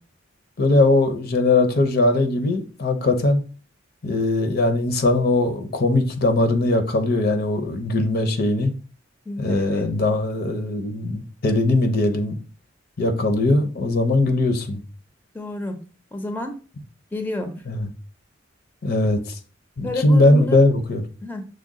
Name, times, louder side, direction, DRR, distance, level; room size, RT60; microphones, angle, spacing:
voice 1, 0.6-3.4 4.0-8.7 9.4-12.4 13.0-14.8 17.7-17.8 18.8-19.2 19.8-21.0, left 2 dB, 55° left, 0.7 m, -20 dB
voice 2, 9.3-9.9 15.3-15.8 16.1-16.5 17.1-17.5 19.8-20.6 21.2-21.4, left 2 dB, 10° left, 0.6 m, -29 dB
6.3 x 2.2 x 3.6 m
head